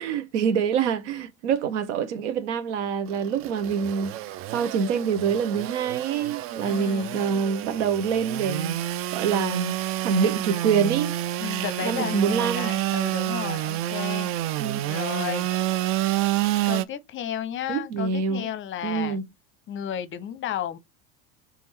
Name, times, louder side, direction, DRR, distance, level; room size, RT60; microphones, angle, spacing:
voice 1, 0.0-8.8 9.1-9.8 10.0-11.1 11.8-12.8 14.6-14.8 17.7-18.5 18.8-19.2, right 6 dB, 75° right, 0.9 m, -26 dB
Engine / Sawing, 3.1-16.8, right 14 dB, 40° right, 0.4 m, -29 dB
voice 2, 6.6-7.2 11.4-14.3 14.9-15.5 16.7-19.2 19.7-20.8, left 10 dB, 35° left, 0.7 m, -33 dB
3.6 x 3.4 x 4.3 m
hypercardioid pair, 90°, 35 cm